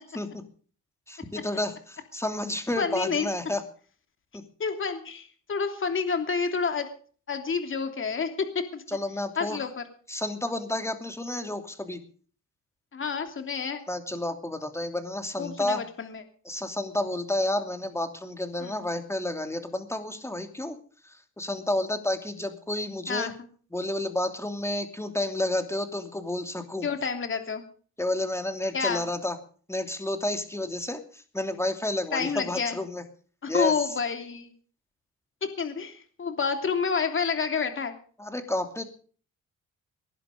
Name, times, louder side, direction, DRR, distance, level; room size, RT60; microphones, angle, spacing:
voice 1, 1.1-3.6 4.3-4.4 8.9-9.6 10.1-12.0 13.9-15.8 16.4-20.8 21.0-23.3 23.7-26.9 28.0-29.4 29.7-33.0 33.5-33.7 38.2-38.9, left 1 dB, 10° left, 7 dB, 2.8 m, -30 dB
voice 2, 2.8-3.3 4.6-6.9 7.3-8.5 8.7-8.8 9.4-9.8 12.9-13.8 15.4-16.2 18.6-18.7 23.1-23.3 26.8-27.6 28.7-29.0 32.1-32.8 33.4-34.5 35.4-37.9, left 5 dB, 40° left, 6 dB, 3.0 m, -29 dB
19.5 x 11.0 x 5.2 m, 0.43 s
cardioid pair, 90°, 30 cm